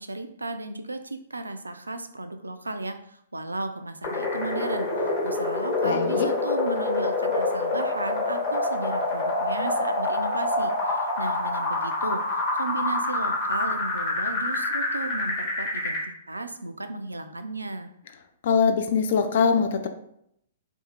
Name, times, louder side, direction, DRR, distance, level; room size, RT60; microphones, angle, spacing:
voice 1, 0.0-17.9, right 2 dB, 80° right, 8 dB, 0.3 m, -35 dB
sound 1, 4.0-16.0, left 2 dB, 35° left, 1.0 m, -26 dB
voice 2, 5.8-6.3 18.4-19.9, left 6 dB, 50° left, 7 dB, 0.4 m, -22 dB
2.7 x 2.4 x 3.9 m, 0.73 s
figure-of-eight pair, 115°, 0 cm